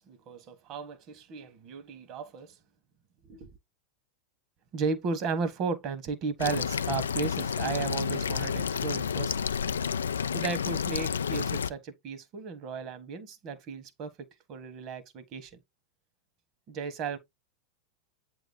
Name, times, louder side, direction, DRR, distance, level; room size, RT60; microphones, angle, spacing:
voice 1, 0.0-2.5 3.3-3.5 4.7-9.5 10.3-15.5 16.7-17.2, right 5 dB, 45° right, 1.4 m, -35 dB
sound 1, 6.4-11.7, left 7 dB, 85° left, 0.3 m, -30 dB
8.0 x 3.0 x 4.0 m
hypercardioid pair, 100°, 0 cm